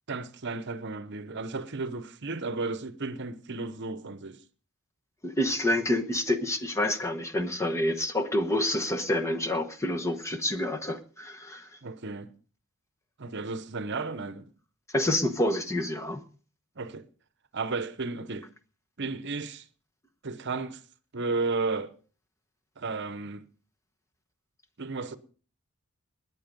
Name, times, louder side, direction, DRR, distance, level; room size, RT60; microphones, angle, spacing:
voice 1, 0.1-4.4 11.8-12.3 13.2-14.5 16.8-17.0 17.5-18.5 19.0-19.6 20.2-20.8 21.1-21.9 22.8-23.4 24.8-25.2, right 3 dB, 55° right, 0.9 m, -33 dB
voice 2, 5.2-11.8 14.9-16.2, left 1 dB, 15° left, 1.1 m, -28 dB
20.5 x 8.4 x 5.3 m
head